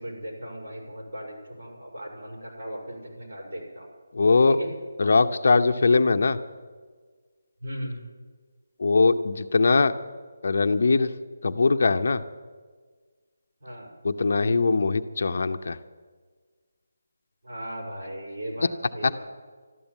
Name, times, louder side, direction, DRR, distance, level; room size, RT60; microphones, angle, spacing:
voice 1, 0.0-3.9 4.5-4.7 7.6-8.0 13.6-13.9 17.4-19.3, equal, 60° right, -1 dB, 6.0 m, -37 dB
voice 2, 4.1-4.6 5.0-6.4 8.8-9.9 10.4-11.1 11.4-12.2 14.0-15.8 19.0-19.1, left 4 dB, 50° left, 8 dB, 0.7 m, -21 dB
12.5 x 12.5 x 9.0 m, 1.5 s
hypercardioid pair, 175°, 0 cm